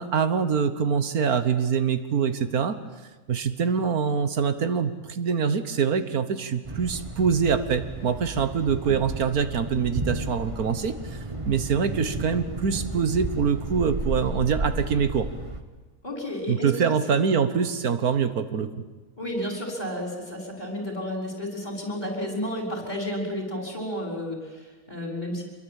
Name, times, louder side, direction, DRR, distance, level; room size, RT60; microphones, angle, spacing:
voice 1, 0.0-2.8 3.3-11.2 11.4-15.3 16.5-18.7, right 6 dB, 80° right, 11 dB, 1.8 m, -24 dB
Thunder, 6.6-15.6, right 2 dB, 20° right, 1.6 m, -33 dB
voice 2, 16.0-17.0 19.2-25.4, left 1 dB, 30° left, 1 dB, 6.1 m, -32 dB
26.0 x 23.0 x 8.9 m, 1.2 s
omnidirectional pair, 1.5 m